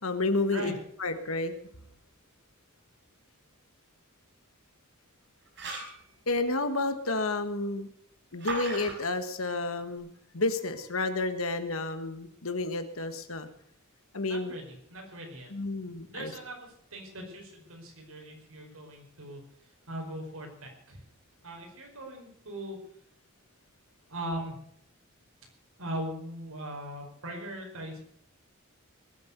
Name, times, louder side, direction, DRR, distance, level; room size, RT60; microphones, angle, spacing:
voice 1, 0.0-0.7 1.0-1.5 6.3-7.9 8.3-10.1 10.3-13.5 14.1-14.5 15.5-16.3, left 2 dB, 75° left, 10 dB, 1.6 m, -30 dB
sound 1, 5.4-6.0 8.4-8.9, right 3 dB, 55° right, 5.1 m, -36 dB
voice 2, 14.2-15.5 16.1-19.4 19.9-21.0 21.4-22.8 24.1-24.6 25.8-28.0, right 1 dB, 80° right, 1 dB, 5.1 m, -40 dB
20.5 x 8.0 x 6.9 m, 0.67 s
head